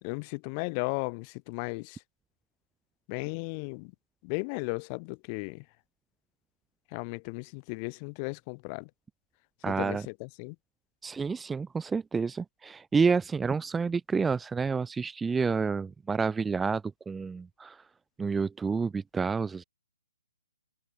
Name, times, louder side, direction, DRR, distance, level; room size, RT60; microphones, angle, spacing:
voice 1, 0.0-2.0 3.1-3.9 4.2-5.6 6.9-8.9 9.7-10.6, left 35 dB, 30° left, 4.3 m, -35 dB
voice 2, 9.6-10.1 11.0-17.9 18.2-19.6, right 5 dB, 10° right, 0.9 m, -29 dB
open air
figure-of-eight pair, 135°, 0 cm